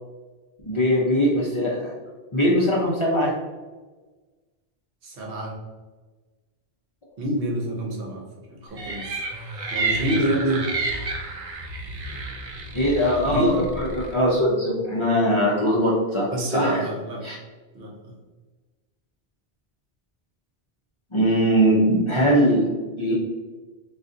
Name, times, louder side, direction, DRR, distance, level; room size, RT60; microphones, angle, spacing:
voice 1, 0.6-1.9 2.3-3.3 12.7-16.8 17.2-17.4 21.1-22.7 23.0-23.1, equal, 40° left, -5 dB, 0.5 m, -21 dB
voice 2, 5.0-5.6 7.2-8.2 8.5-9.2 9.7-10.7 13.2-13.6 16.3-17.3 17.7-18.1, right 1 dB, 65° right, 0 dB, 0.9 m, -26 dB
sound 1, 8.8-14.2, right 3 dB, 50° right, 0.4 m, -30 dB
3.8 x 2.4 x 2.5 m, 1.3 s
omnidirectional pair, 1.1 m